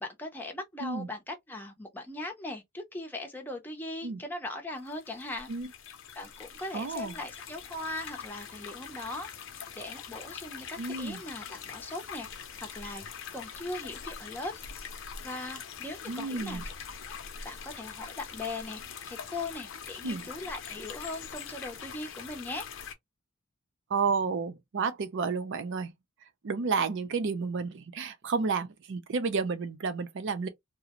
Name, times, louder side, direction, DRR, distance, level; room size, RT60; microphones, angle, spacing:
voice 1, 0.0-5.5 6.1-9.3 9.8-12.3 12.6-13.0 13.3-14.5 15.2-16.6 17.4-22.7, left 2 dB, 10° left, 0.5 m, -39 dB
sound 1, 4.8-22.9, left 7 dB, 65° left, 0.6 m, -43 dB
voice 2, 6.7-7.1 10.8-11.2 16.1-16.6 20.0-20.3 23.9-25.9 26.4-30.5, right 4 dB, 60° right, 0.5 m, -31 dB
2.5 x 2.0 x 2.9 m
head